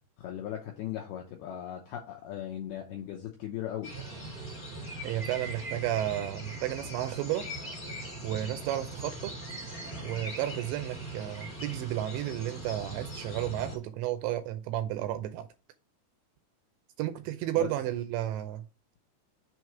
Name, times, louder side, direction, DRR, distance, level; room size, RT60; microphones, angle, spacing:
voice 1, 0.2-3.9 17.6-17.7, left 11 dB, 85° left, 2.2 m, -38 dB
sound 1, 3.8-13.8, right 1 dB, 25° left, 1.1 m, -40 dB
voice 2, 5.0-7.5 8.2-9.3 10.0-15.5 17.0-18.7, right 13 dB, 85° right, 2.6 m, -32 dB
7.3 x 3.1 x 5.8 m
omnidirectional pair, 5.5 m